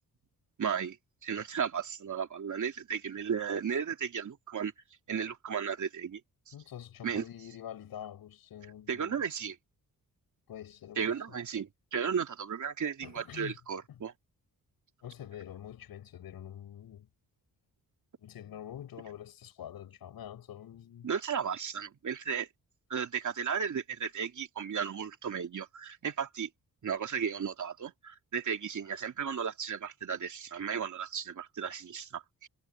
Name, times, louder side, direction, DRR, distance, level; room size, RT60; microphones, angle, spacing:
voice 1, 0.6-1.0 1.2-4.7 5.1-6.2 7.0-7.2 8.9-9.5 11.0-14.1 21.0-22.5 22.9-26.5 26.8-32.5, right 7 dB, 55° right, 3.0 m, -34 dB
voice 2, 6.5-9.2 10.5-11.4 13.0-13.6 13.9-14.0 15.0-17.1 18.2-21.1, left 10 dB, 85° left, 8.0 m, -46 dB
cardioid pair, 105°, 35 cm